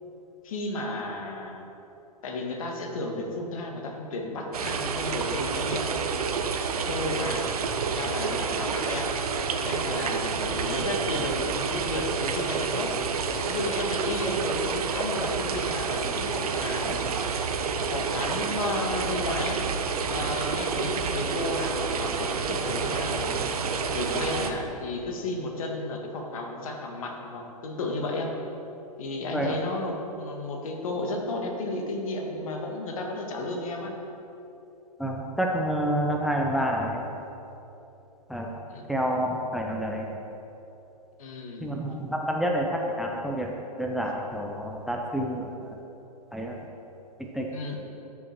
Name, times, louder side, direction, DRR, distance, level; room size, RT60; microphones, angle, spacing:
voice 1, 0.4-1.7 2.2-5.9 6.7-7.5 7.9-9.1 9.6-12.9 13.4-17.1 17.9-19.6 20.1-23.5 23.9-28.3 29.0-33.9 38.7-38.9 41.2-41.7 47.5-47.8, left 2 dB, 55° left, 2 dB, 1.8 m, -33 dB
sound 1, 4.5-24.5, right 5 dB, 65° right, 0.9 m, -29 dB
voice 2, 35.0-37.0 38.3-38.5 38.9-40.1 41.6-43.5 43.8-45.5 46.3-46.6 47.2-47.5, equal, ahead, 0 dB, 0.6 m, -28 dB
14.0 x 6.2 x 4.5 m, 3.0 s
figure-of-eight pair, 115°, 20 cm